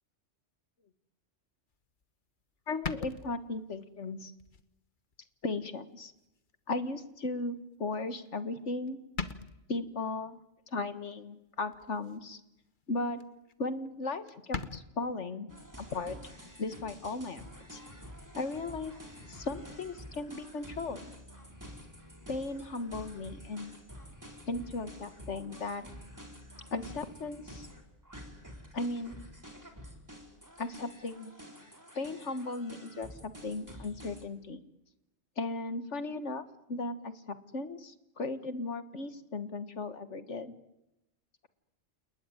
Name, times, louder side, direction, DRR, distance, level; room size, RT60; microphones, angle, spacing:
sound 1, 2.0-2.1 2.8-3.8 4.4-4.7 5.1-5.2 6.5-6.6 8.3-8.6 8.9-9.0 9.2-9.8 11.7-12.2 12.6-12.8 13.2-13.3 13.5-13.6 13.9-14.0 14.3-14.8, left 5 dB, 45° left, 1.4 m, -39 dB
voice 1, 2.7-4.3 5.4-6.1 6.7-9.0 9.7-10.4 10.7-12.4 12.9-13.2 13.6-15.5 15.8-16.2 16.6-17.8 18.4-18.9 19.3-21.1 22.3-23.7 24.5-25.9 26.7-27.7 28.7-29.1 30.6-31.3 31.9-34.6 35.4-40.5, left 3 dB, 80° left, 11 dB, 2.0 m, -36 dB
sound 2, 15.5-34.3, equal, 15° right, 3.5 m, -49 dB
29.0 x 20.5 x 9.9 m, 0.93 s
omnidirectional pair, 1.2 m